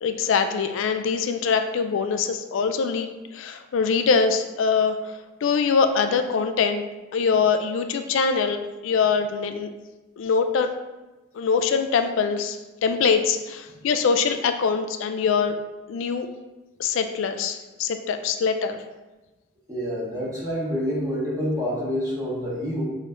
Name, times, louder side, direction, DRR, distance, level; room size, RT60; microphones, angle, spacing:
voice 1, 0.0-5.0 5.4-6.8 7.1-9.7 10.2-10.7 11.3-15.6 15.9-16.3 16.8-18.8, left 5 dB, 70° left, 7 dB, 0.3 m, -23 dB
voice 2, 19.7-22.8, equal, 15° right, -6 dB, 1.0 m, -27 dB
6.4 x 3.0 x 2.5 m, 1.1 s
head